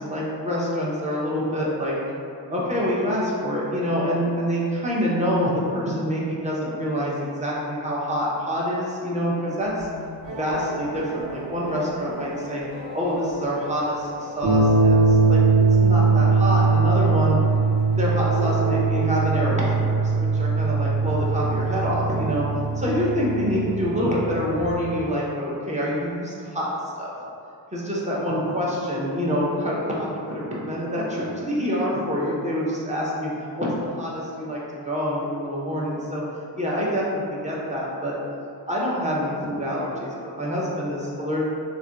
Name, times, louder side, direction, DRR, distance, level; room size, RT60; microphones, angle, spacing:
voice 1, 0.0-2.0 2.5-9.9 10.3-12.6 12.9-15.4 15.8-17.4 17.9-22.5 22.8-26.7 27.0-27.1 27.7-33.3 33.6-33.7 34.0-36.2 36.6-38.2 38.7-41.4, equal, 20° right, -6 dB, 0.4 m, -26 dB
sound 1, 9.8-24.7, right 4 dB, 50° right, 0.8 m, -22 dB
2.4 x 2.1 x 3.6 m, 2.5 s
wide cardioid pair, 140°, 45 cm